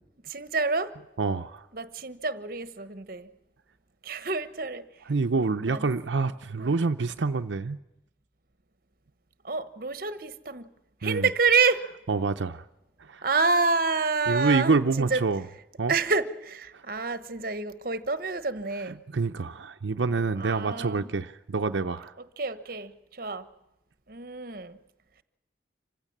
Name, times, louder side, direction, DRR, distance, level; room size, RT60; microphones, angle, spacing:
voice 1, 0.3-0.9 1.7-3.3 4.0-4.8 5.7-5.9 6.6-6.7 9.4-10.7 11.0-11.8 13.2-15.2 15.9-19.0 20.4-21.1 22.4-23.5 24.1-24.8, right 4 dB, 50° right, 1.1 m, -28 dB
voice 2, 1.2-1.7 5.1-7.8 11.0-11.3 12.1-12.6 13.0-13.2 14.3-15.4 15.8-15.9 16.7-16.8 19.1-22.1, right 4 dB, 85° right, 0.7 m, -27 dB
26.5 x 16.0 x 7.3 m
head